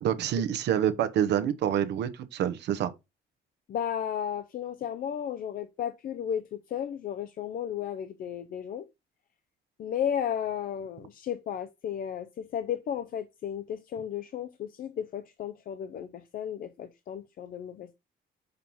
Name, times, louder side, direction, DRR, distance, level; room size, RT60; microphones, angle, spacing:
voice 1, 0.0-2.9, right 10 dB, 75° right, 0.9 m, -27 dB
voice 2, 3.7-8.8 9.8-17.9, left 9 dB, 55° left, 0.6 m, -34 dB
6.5 x 2.9 x 5.5 m
cardioid pair, 125°, 18 cm